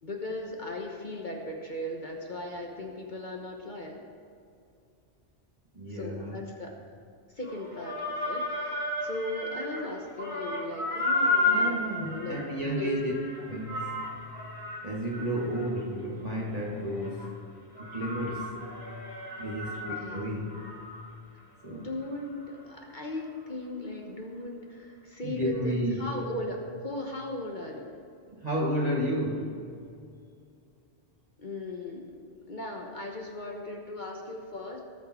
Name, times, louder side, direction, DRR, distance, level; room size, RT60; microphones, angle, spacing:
voice 1, 0.0-4.0 5.9-6.8 7.3-12.4 12.7-13.0 19.7-20.2 21.7-27.9 31.4-34.8, left 1 dB, 45° left, 0 dB, 1.3 m, -38 dB
voice 2, 5.7-6.4 11.5-13.1 13.4-14.1 14.8-17.3 17.8-18.6 19.4-20.7 21.6-21.9 25.2-26.0 28.3-29.6, equal, 35° right, -4 dB, 1.7 m, -32 dB
sound 1, 7.4-9.9 10.2-17.3 17.8-21.1 21.4-21.5 22.0-22.1, left 2 dB, 65° left, 3.3 m, -33 dB
18.5 x 6.7 x 4.4 m, 2.5 s
omnidirectional pair, 1.2 m